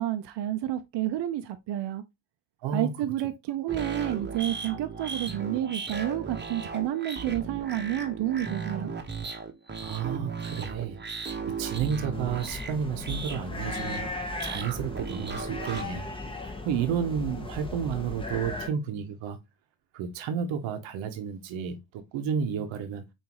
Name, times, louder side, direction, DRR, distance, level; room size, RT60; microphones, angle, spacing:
voice 1, 0.0-2.0 2.7-8.9, right 13 dB, 65° right, 0.6 m, -30 dB
sound 1, 3.7-15.8, right 5 dB, 25° right, 1.0 m, -36 dB
voice 2, 9.8-14.1 14.4-16.1 16.4-19.4 19.9-23.0, right 7 dB, 90° right, 0.9 m, -31 dB
sound 2, 12.1-18.7, left 2 dB, 10° left, 0.9 m, -37 dB
5.3 x 2.7 x 2.9 m
cardioid pair, 85°, 45 cm